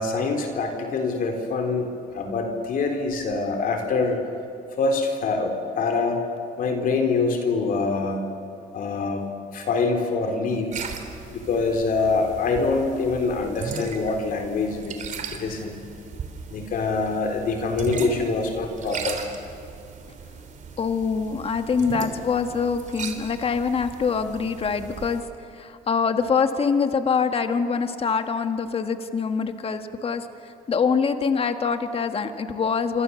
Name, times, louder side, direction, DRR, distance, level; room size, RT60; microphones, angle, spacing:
voice 1, 0.0-4.2 4.8-6.2 6.6-8.2 8.7-9.3 9.5-10.8 11.3-15.0 15.4-15.8 16.5-19.2, left 4 dB, 55° left, 3 dB, 3.9 m, -25 dB
sound 1, 10.7-25.2, right 5 dB, 45° right, 3.4 m, -37 dB
voice 2, 20.8-25.2 25.5-30.3 30.7-33.0, left 5 dB, 35° left, 7 dB, 1.7 m, -24 dB
27.5 x 25.5 x 7.1 m, 2.6 s
cardioid pair, 110°, 17 cm